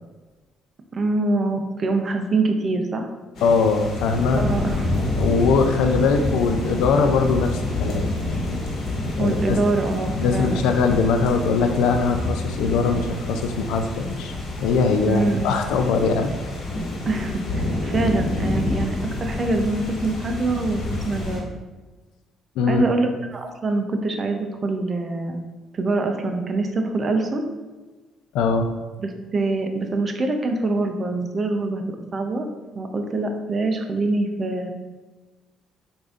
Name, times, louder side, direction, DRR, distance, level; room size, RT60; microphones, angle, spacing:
voice 1, 0.9-3.1 4.4-4.9 9.2-10.7 15.1-15.5 17.0-21.5 22.7-25.4 25.7-27.4 29.0-31.8 32.1-32.5 32.7-34.7, right 2 dB, 40° right, 5 dB, 0.5 m, -24 dB
sound 1, 3.3-21.4, left 2 dB, 60° left, 1.1 m, -28 dB
voice 2, 3.4-4.5 5.2-8.1 9.1-9.6 10.1-16.3 22.6-22.8 28.3-28.7, left 4 dB, 80° left, 6 dB, 0.3 m, -21 dB
4.8 x 2.6 x 2.4 m, 1.2 s
supercardioid pair, 60°, 0 cm